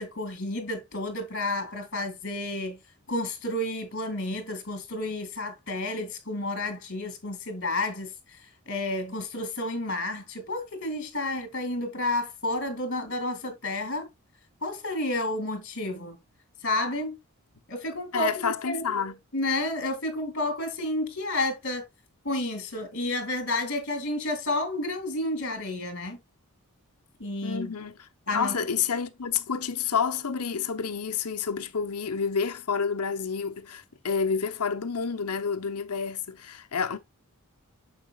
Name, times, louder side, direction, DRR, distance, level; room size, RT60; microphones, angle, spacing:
voice 1, 0.0-2.8 3.1-8.4 8.7-14.1 14.6-16.2 16.6-17.2 17.7-21.8 22.2-26.2 27.2-27.7 28.3-28.6, left 2 dB, 50° left, 2.5 m, -31 dB
voice 2, 18.1-19.1 27.4-27.9 28.3-37.0, left 6 dB, 90° left, 0.9 m, -29 dB
8.9 x 6.8 x 2.3 m
head